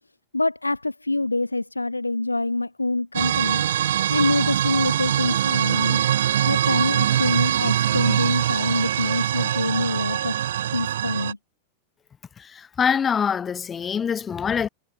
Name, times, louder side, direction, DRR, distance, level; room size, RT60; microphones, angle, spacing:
voice 1, 0.3-3.6 4.1-6.0 6.5-10.3 10.7-11.4, left 2 dB, 85° left, 2.6 m, -25 dB
sound 1, 3.1-11.3, right 11 dB, 60° right, 2.0 m, -23 dB
voice 2, 12.4-14.7, left 7 dB, 20° left, 0.7 m, -24 dB
figure-of-eight pair, 90°, 0 cm